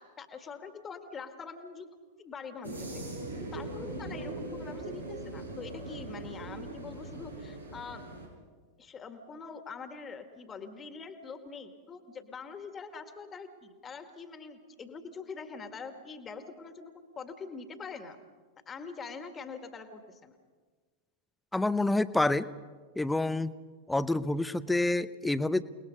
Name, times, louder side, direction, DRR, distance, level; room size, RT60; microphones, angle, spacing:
voice 1, 0.0-1.9 2.2-2.9 3.3-8.1 8.8-18.2 18.7-20.4, left 5 dB, 20° left, 8 dB, 1.9 m, -44 dB
sound 1, 2.6-8.3, right 2 dB, 85° right, 5.9 m, -40 dB
voice 2, 21.5-22.5 23.0-23.5 23.9-25.6, left 2 dB, 5° left, 15 dB, 0.8 m, -27 dB
29.5 x 20.0 x 5.4 m, 1.5 s
figure-of-eight pair, 90°, 0 cm